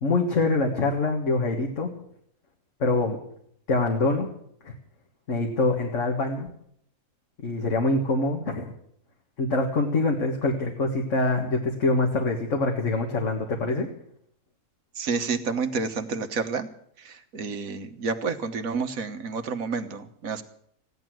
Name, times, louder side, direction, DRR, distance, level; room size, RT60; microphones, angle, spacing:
voice 1, 0.0-1.9 2.8-3.2 3.7-4.3 4.6-4.7 5.3-6.5 7.4-8.7 9.4-13.9, left 2 dB, 55° left, 1 dB, 2.0 m, -24 dB
voice 2, 15.0-16.7 17.0-20.4, right 4 dB, 70° right, 9 dB, 1.6 m, -29 dB
16.0 x 10.5 x 7.7 m, 0.68 s
omnidirectional pair, 1.5 m